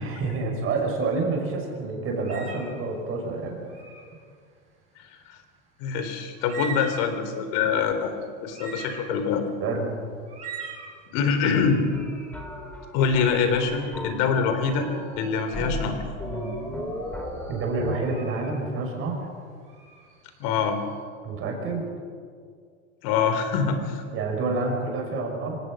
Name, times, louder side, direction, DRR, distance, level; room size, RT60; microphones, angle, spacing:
voice 1, 0.0-3.6 9.6-9.9 17.5-19.2 21.2-21.8 24.1-25.6, right 3 dB, 30° right, 2 dB, 5.8 m, -28 dB
sound 1, 2.2-2.8 3.6-4.1 6.0-6.1 6.4-7.2 7.8-7.9 8.4-9.3 10.3-10.9 14.2-14.5 15.2-15.6 16.2-16.6 17.2-18.5 19.6-20.7, right 6 dB, 15° right, 6.8 m, -40 dB
voice 2, 5.8-8.1 8.4-9.4 11.1-11.8 12.9-14.9 15.2-16.0 20.4-20.8 23.0-24.0, left 6 dB, 45° left, 7 dB, 3.8 m, -24 dB
sound 2, 11.5-17.9, equal, 5° left, 3.6 m, -36 dB
26.5 x 18.0 x 6.4 m, 2.1 s
supercardioid pair, 135°, 41 cm